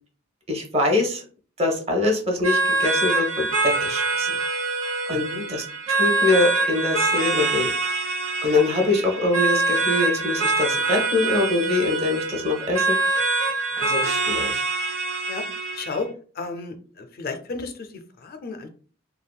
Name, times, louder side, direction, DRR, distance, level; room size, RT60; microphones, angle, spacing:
voice 1, 0.5-1.2 1.6-4.3 5.1-7.7 8.4-13.0 13.8-14.6, left 2 dB, 30° right, 1 dB, 0.8 m, -24 dB
sound 1, 2.4-16.0, right 3 dB, 70° right, 0.8 m, -24 dB
voice 2, 5.1-5.5 13.8-13.9 15.3-15.4 15.7-16.1 16.3-18.7, left 4 dB, 50° left, 6 dB, 0.4 m, -33 dB
3.5 x 2.1 x 2.2 m, 0.41 s
head